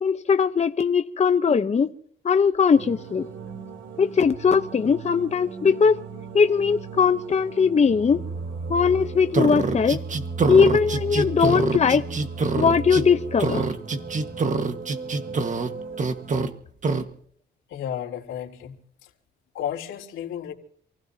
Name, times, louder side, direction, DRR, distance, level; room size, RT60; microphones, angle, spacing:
voice 1, 0.0-1.9 2.2-3.3 4.0-6.0 6.3-8.2 8.7-10.0 10.5-12.1 12.6-13.7, left 6 dB, 35° left, 0.9 m, -20 dB
sound 1, 2.7-16.3, right 4 dB, 70° right, 3.6 m, -36 dB
sound 2, 9.3-13.0 13.4-15.7 16.0-16.5 16.8-17.0, right 4 dB, 40° right, 1.6 m, -25 dB
voice 2, 17.7-18.7 19.5-20.5, left 10 dB, 85° left, 3.5 m, -32 dB
28.5 x 16.0 x 2.9 m
cardioid pair, 90°, 20 cm